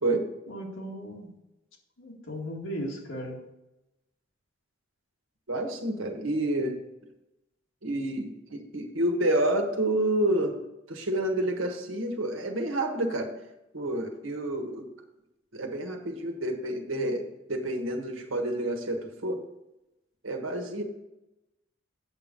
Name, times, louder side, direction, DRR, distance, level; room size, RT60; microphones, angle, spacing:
voice 1, 0.5-1.4 2.0-3.5, equal, 80° left, 0 dB, 2.1 m, -37 dB
voice 2, 5.5-6.8 7.8-10.6 10.9-13.3 13.7-14.9 15.5-19.4 20.2-20.8, right 1 dB, 90° right, 4 dB, 1.5 m, -29 dB
8.2 x 6.9 x 5.3 m, 0.94 s
head